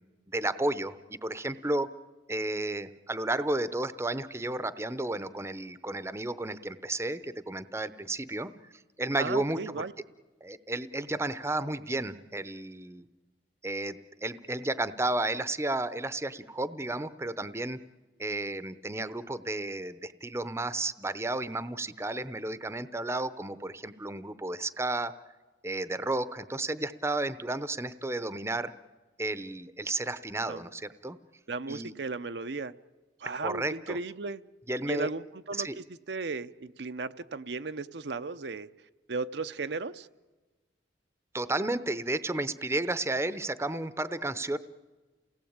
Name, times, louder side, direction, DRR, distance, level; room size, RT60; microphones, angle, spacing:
voice 1, 0.3-1.9 2.3-8.5 9.0-9.8 10.4-13.1 13.6-17.8 18.2-25.1 25.6-28.7 29.2-31.2 31.7-31.9 33.4-34.0 34.7-35.1 35.6-35.8 41.3-44.6, right 2 dB, 15° right, 14 dB, 0.7 m, -32 dB
voice 2, 9.2-9.9 30.5-30.6 31.5-32.7 33.2-34.4 34.9-35.7 36.1-38.7 39.1-40.1, right 3 dB, 70° right, 10 dB, 0.7 m, -35 dB
29.0 x 18.5 x 8.8 m, 1.3 s
head